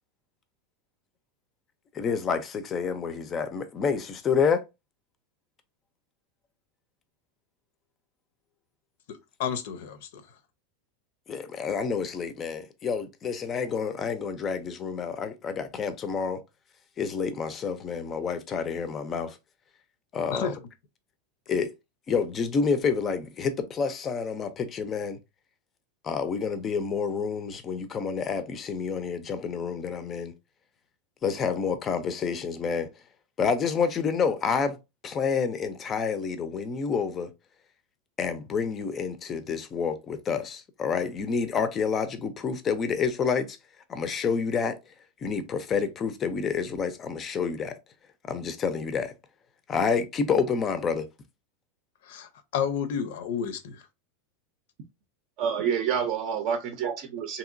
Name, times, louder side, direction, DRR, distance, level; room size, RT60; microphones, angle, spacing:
voice 1, 1.9-4.6 11.3-16.4 17.0-19.4 20.1-20.5 21.5-21.7 22.1-25.2 26.0-30.3 31.2-32.9 33.4-34.8 35.0-37.3 38.2-43.6 43.9-44.8 45.2-47.8 48.3-49.1 49.7-51.1, left 6 dB, 25° left, 0.4 m, -28 dB
voice 2, 9.1-10.2 20.3-20.5 52.0-53.8, left 7 dB, 70° left, 0.6 m, -31 dB
voice 3, 55.4-57.4, right 7 dB, 50° right, 0.6 m, -28 dB
2.8 x 2.8 x 2.5 m
supercardioid pair, 150°, 0 cm